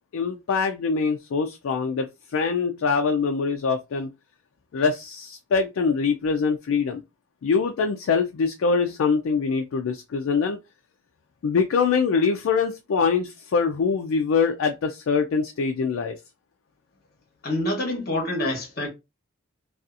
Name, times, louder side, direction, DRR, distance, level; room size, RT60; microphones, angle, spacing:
voice 1, 0.1-4.1 4.7-7.0 7.4-10.6 11.4-16.2, left 5 dB, 75° left, 0.4 m, -24 dB
voice 2, 17.4-18.9, left 1 dB, 45° left, 1.0 m, -26 dB
2.7 x 2.3 x 2.4 m
head